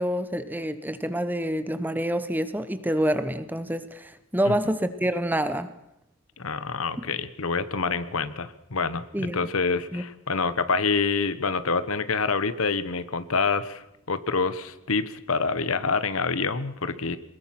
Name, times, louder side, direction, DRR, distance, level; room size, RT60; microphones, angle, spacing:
voice 1, 0.0-5.7 9.1-9.5 9.9-10.0, equal, 10° right, 11 dB, 1.0 m, -27 dB
voice 2, 6.4-17.2, left 4 dB, 85° left, 14 dB, 1.2 m, -27 dB
22.5 x 20.5 x 6.0 m, 0.83 s
head